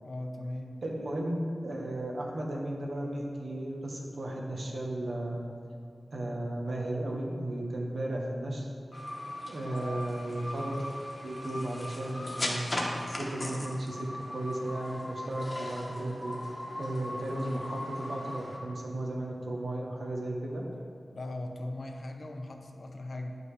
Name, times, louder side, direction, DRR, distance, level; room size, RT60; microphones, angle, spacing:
voice 1, 0.0-0.7 9.8-10.2 21.2-23.4, left 1 dB, 55° left, 4 dB, 0.6 m, -39 dB
voice 2, 0.8-5.5 6.1-8.7 9.5-10.8 11.2-12.6 13.0-16.3 16.8-20.6, right 1 dB, 65° right, -1 dB, 1.1 m, -35 dB
sound 1, 8.9-18.6, left 1 dB, 30° left, 1.0 m, -38 dB
9.4 x 5.3 x 3.3 m, 2.5 s
wide cardioid pair, 110°, 0 cm